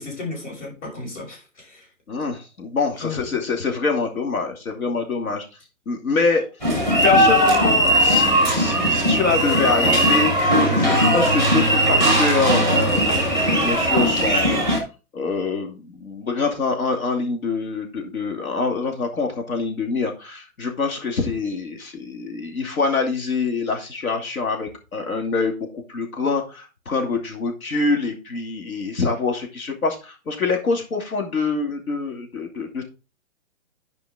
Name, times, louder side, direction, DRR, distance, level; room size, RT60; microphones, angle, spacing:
voice 1, 0.0-1.9 3.0-3.4, left 3 dB, 55° left, 5.9 m, -34 dB
voice 2, 2.1-5.5 5.9-6.4 7.0-10.3 10.7-14.7 15.1-32.8, left 4 dB, 80° left, 2.7 m, -25 dB
sound 1, 6.6-14.8, equal, 10° left, 1.1 m, -18 dB
11.5 x 5.1 x 3.7 m
hypercardioid pair, 175°, 42 cm